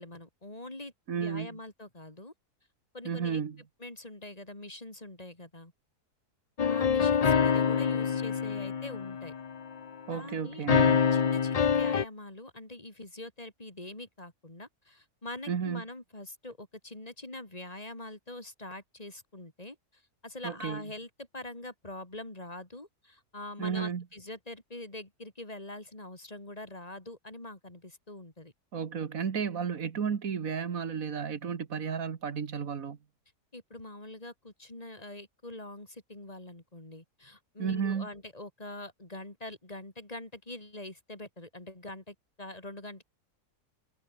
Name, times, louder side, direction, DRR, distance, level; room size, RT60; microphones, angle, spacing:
voice 1, 0.0-2.3 2.9-3.4 3.8-5.7 6.7-9.3 10.1-10.6 11.1-28.5 33.5-43.0, left 2 dB, 25° left, 3.4 m, -44 dB
voice 2, 1.1-1.6 3.1-3.6 10.1-11.0 15.5-15.8 20.4-20.8 23.6-24.0 28.7-33.0 37.6-38.1, right 7 dB, 60° right, 1.8 m, -33 dB
sound 1, 6.6-9.8 10.7-12.0, left 6 dB, 85° left, 0.3 m, -26 dB
omnidirectional pair, 1.7 m